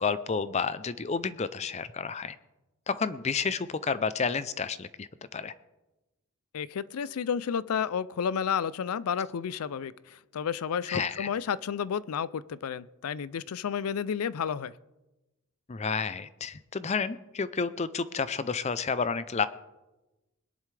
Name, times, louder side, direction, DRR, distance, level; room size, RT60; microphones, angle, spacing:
voice 1, 0.0-2.4 2.9-5.5 10.9-11.3 15.7-19.5, left 5 dB, 30° left, 15 dB, 0.5 m, -30 dB
voice 2, 6.5-14.7, left 7 dB, 85° left, 19 dB, 0.4 m, -31 dB
21.0 x 11.0 x 3.3 m, 1.0 s
head